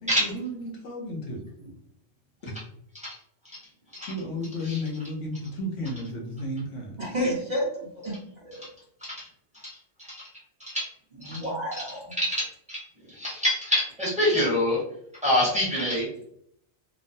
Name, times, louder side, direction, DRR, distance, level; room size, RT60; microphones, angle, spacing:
voice 1, 0.0-1.4 2.4-2.5 4.1-7.0, left 1 dB, 70° left, -1 dB, 1.0 m, -33 dB
voice 2, 7.0-8.1 8.4-8.7 11.3-12.1, equal, 40° right, -6 dB, 0.7 m, -30 dB
voice 3, 12.2-12.8 13.1-14.8 15.2-16.1, left 1 dB, 5° right, -7 dB, 0.9 m, -26 dB
2.9 x 2.0 x 2.6 m, 0.70 s
omnidirectional pair, 1.4 m